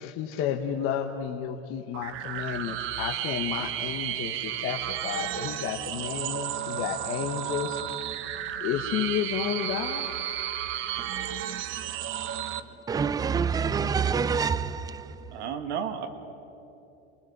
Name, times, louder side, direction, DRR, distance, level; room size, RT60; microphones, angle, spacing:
voice 1, 0.0-8.1 8.6-10.1, left 9 dB, 45° left, 1.2 m, -32 dB
sound 1, 1.9-12.6, right 11 dB, 40° right, 0.9 m, -33 dB
voice 2, 12.9-15.0, right 6 dB, 10° right, 0.5 m, -26 dB
voice 3, 15.3-16.1, right 8 dB, 90° right, 2.0 m, -32 dB
27.5 x 19.5 x 6.7 m
supercardioid pair, 140°, 33 cm